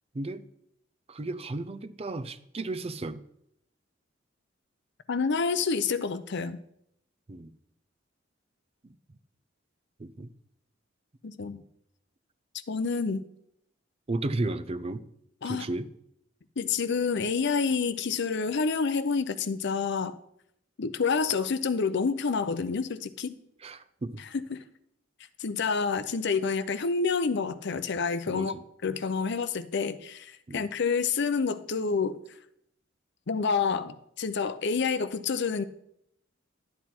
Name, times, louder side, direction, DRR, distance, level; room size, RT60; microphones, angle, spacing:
voice 1, 1.1-3.2 7.3-7.5 10.0-10.3 14.1-15.0 15.4-15.9 23.6-24.2 28.3-28.6 30.5-30.7, right 2 dB, 30° right, 13 dB, 0.5 m, -34 dB
voice 2, 5.1-6.6 11.2-11.6 12.7-13.2 15.4-15.7 16.6-20.2 20.8-23.3 24.2-24.6 25.4-28.5 28.8-32.2 33.3-35.6, left 5 dB, 60° left, 13 dB, 0.6 m, -28 dB
11.5 x 8.2 x 4.4 m, 0.75 s
head